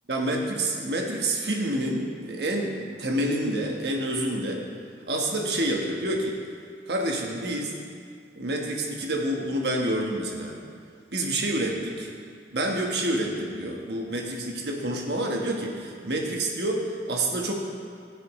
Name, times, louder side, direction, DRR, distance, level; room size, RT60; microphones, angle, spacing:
voice 1, 0.1-4.6 5.1-6.3 6.9-7.7 8.4-10.6 11.1-12.1 12.5-17.5, right 1 dB, 65° right, 1 dB, 1.3 m, -28 dB
15.5 x 7.0 x 3.1 m, 2.2 s
head